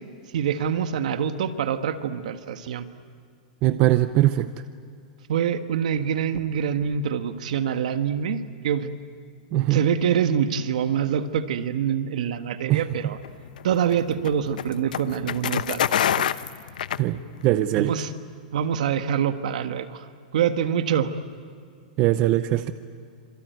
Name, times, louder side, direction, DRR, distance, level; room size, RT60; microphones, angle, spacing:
voice 1, 0.3-2.9 5.3-9.0 9.5-13.2 13.6-15.8 16.2-16.4 17.7-18.1 18.5-20.1 20.3-21.1, right 8 dB, 60° right, 9 dB, 1.6 m, -25 dB
voice 2, 3.6-4.5 9.5-9.8 12.7-12.9 17.0-18.0 22.0-22.7, right 15 dB, 25° right, 11 dB, 0.6 m, -21 dB
sound 1, 13.2-17.6, left 10 dB, 85° left, 0.8 m, -27 dB
26.5 x 24.0 x 9.4 m, 2.3 s
supercardioid pair, 175°, 4 cm